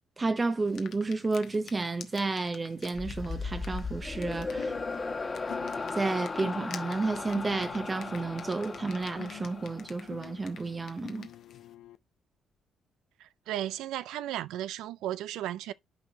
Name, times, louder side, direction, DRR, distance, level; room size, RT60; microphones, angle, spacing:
voice 1, 0.2-4.8 5.9-11.3, right 3 dB, 30° right, 0.7 m, -31 dB
sound 1, 0.7-11.7, left 8 dB, 65° left, 1.1 m, -51 dB
sound 2, 3.0-10.3, left 3 dB, 30° left, 1.5 m, -37 dB
sound 3, 4.6-12.0, left 12 dB, 85° left, 0.6 m, -48 dB
voice 2, 13.2-15.7, right 13 dB, 85° right, 0.4 m, -35 dB
11.5 x 4.3 x 2.8 m
supercardioid pair, 75°, 0 cm